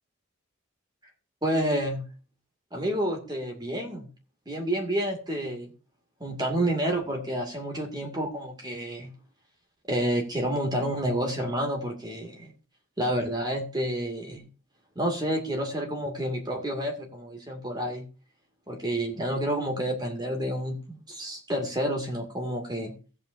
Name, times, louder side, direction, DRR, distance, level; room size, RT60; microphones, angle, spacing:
voice 1, 1.4-2.0 2.7-4.1 4.5-5.7 6.2-9.1 9.9-12.5 13.0-14.5 15.0-18.0 18.7-22.9, right 1 dB, 20° right, 2 dB, 2.3 m, -29 dB
16.0 x 8.7 x 2.7 m, 0.35 s
head